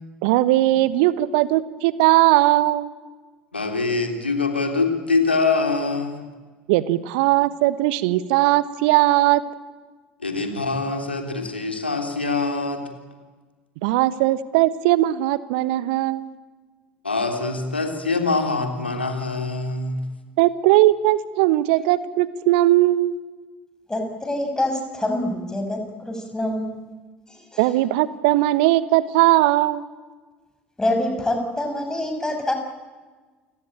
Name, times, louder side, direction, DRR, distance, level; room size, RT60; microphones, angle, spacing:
voice 1, 0.2-2.9 6.7-9.4 13.8-16.3 20.4-23.2 27.6-29.8, right 16 dB, 65° right, 16 dB, 1.2 m, -19 dB
voice 2, 3.5-6.2 10.2-12.8 17.0-20.0, left 3 dB, 90° left, 4 dB, 3.1 m, -24 dB
voice 3, 23.9-26.9 27.3-27.8 30.8-32.5, left 1 dB, 10° left, 4 dB, 6.5 m, -26 dB
29.0 x 18.0 x 8.9 m, 1.4 s
figure-of-eight pair, 65°, 6 cm